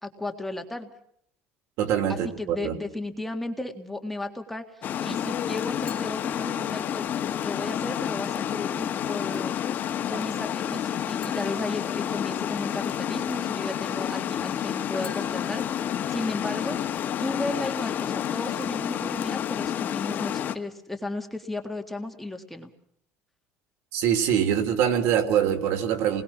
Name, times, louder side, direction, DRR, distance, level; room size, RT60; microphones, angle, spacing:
voice 1, 0.0-0.9 2.1-7.1 7.4-9.6 10.1-15.7 16.1-16.8 17.2-22.7, left 2 dB, 5° left, 3 dB, 1.8 m, -34 dB
voice 2, 1.8-2.7 23.9-26.2, right 9 dB, 65° right, 8 dB, 3.1 m, -24 dB
Water, 4.8-20.5, left 9 dB, 40° left, 1.3 m, -29 dB
sound 1, 5.9-7.2 11.2-12.7 15.0-16.7, left 4 dB, 20° left, 5.0 m, -49 dB
29.5 x 20.5 x 6.0 m, 0.70 s
cardioid pair, 160°, 5 cm